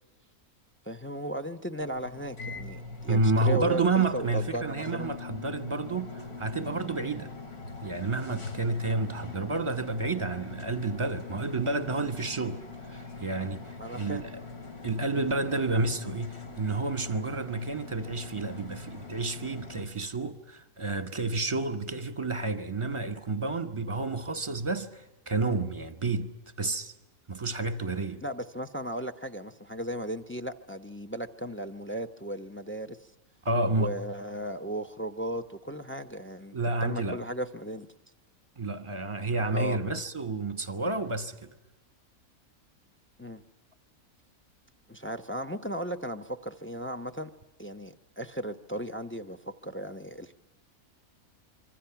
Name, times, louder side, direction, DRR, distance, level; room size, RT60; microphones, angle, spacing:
voice 1, 0.9-5.1 13.8-14.2 28.2-33.0 33.7-37.9 39.5-39.8 43.2-43.4 44.9-47.3 47.6-50.3, right 1 dB, 15° left, 0.4 m, -36 dB
sound 1, 1.8-19.9, left 3 dB, 80° left, 3.5 m, -43 dB
voice 2, 3.1-7.3 7.8-12.6 12.9-14.4 14.8-26.3 26.6-26.9 27.3-28.2 33.4-33.9 36.5-37.2 38.6-41.5, right 3 dB, 25° right, 1.0 m, -30 dB
26.0 x 24.0 x 5.8 m
omnidirectional pair, 1.6 m